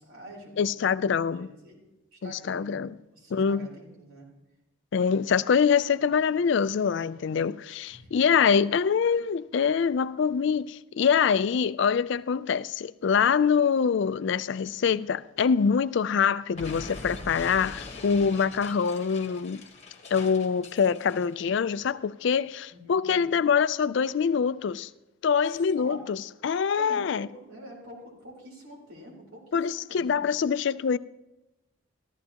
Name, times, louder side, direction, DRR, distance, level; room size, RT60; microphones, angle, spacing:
voice 1, 0.0-0.8 1.3-1.8 2.1-2.8 3.1-4.3 7.9-8.3 22.7-23.4 25.5-26.0 26.8-30.2, right 1 dB, 80° right, 4.0 m, -46 dB
voice 2, 0.6-1.5 2.2-2.9 3.3-3.6 4.9-19.6 20.1-24.9 25.2-26.2 26.4-27.3 29.5-31.0, left 6 dB, 55° left, 0.3 m, -25 dB
Explosion, 16.5-21.3, left 2 dB, 30° left, 1.3 m, -42 dB
14.5 x 13.5 x 2.9 m
head